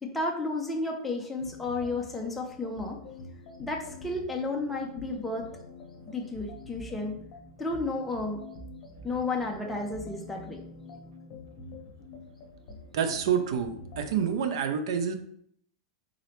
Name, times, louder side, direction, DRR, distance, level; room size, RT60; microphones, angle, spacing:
voice 1, 0.0-3.0 3.6-5.5 6.1-7.2 7.6-8.4 9.0-10.6, left 2 dB, 5° left, -1 dB, 0.5 m, -32 dB
sound 1, 1.4-14.5, left 2 dB, 40° left, 1.0 m, -46 dB
voice 2, 12.9-15.1, right 7 dB, 70° right, 8 dB, 0.5 m, -28 dB
3.8 x 3.1 x 3.0 m, 0.66 s
supercardioid pair, 155°, 3 cm